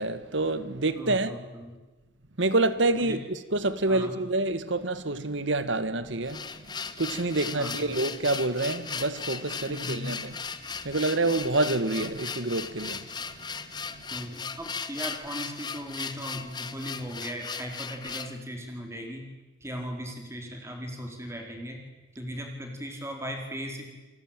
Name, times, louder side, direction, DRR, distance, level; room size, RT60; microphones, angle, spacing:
voice 1, 0.0-1.4 2.4-6.4 7.0-10.3 10.8-13.0, right 2 dB, 80° right, 1.7 m, -27 dB
voice 2, 0.9-1.7 2.9-3.2 3.9-4.1 7.5-7.9 9.7-10.2 14.1-19.3 19.6-21.8 22.2-23.9, equal, 15° right, 4.5 m, -38 dB
sound 1, 6.0-18.4, left 5 dB, 20° left, 1.3 m, -37 dB
28.5 x 19.5 x 9.1 m
head